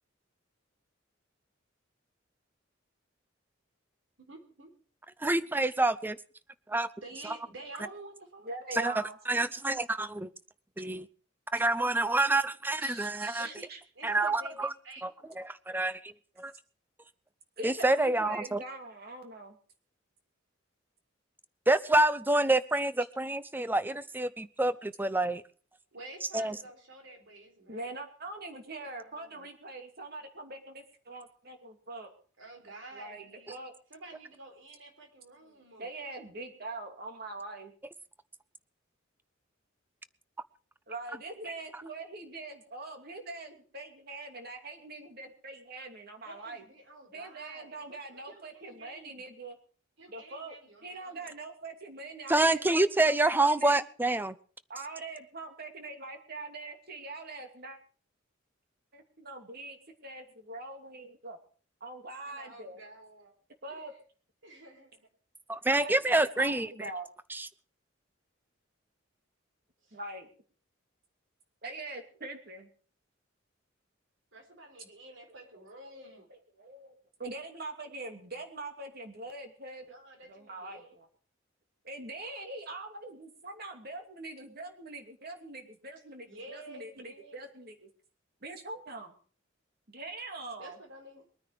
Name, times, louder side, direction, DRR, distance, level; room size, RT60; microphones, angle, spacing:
voice 1, 4.2-4.7 7.0-8.5 13.4-13.7 13.9-15.4 25.9-28.0 28.8-29.5 32.4-33.6 33.9-35.9 46.2-49.2 50.0-51.3 62.2-63.3 63.7-63.8 64.4-65.1 69.8-70.0 74.3-76.3 79.9-81.0 86.3-87.5 90.6-91.2, right 2 dB, 70° right, 4 dB, 4.1 m, -50 dB
voice 2, 5.2-6.2 6.7-6.9 8.7-8.9 9.3-10.3 10.8-11.1 11.5-13.5 14.0-14.7 15.0-15.1 15.4-16.1 16.4-16.5 17.6-18.6 21.7-25.4 26.3-26.6 52.3-54.4 65.5-66.7 67.3-67.5, right 2 dB, 10° right, 15 dB, 0.6 m, -27 dB
voice 3, 8.4-9.2 12.8-13.8 17.6-19.6 27.7-32.1 32.9-33.7 35.8-37.7 40.9-46.6 47.1-49.6 50.1-50.5 50.8-53.9 54.7-57.8 58.9-61.4 61.8-62.8 63.6-63.9 65.8-67.1 69.9-70.3 71.6-72.7 75.5-75.6 76.0-76.9 77.2-79.9 80.2-81.1 81.8-87.9 88.4-89.2 89.9-90.8, right 2 dB, 50° right, 5 dB, 2.7 m, -43 dB
22.0 x 9.7 x 4.9 m, 0.42 s
head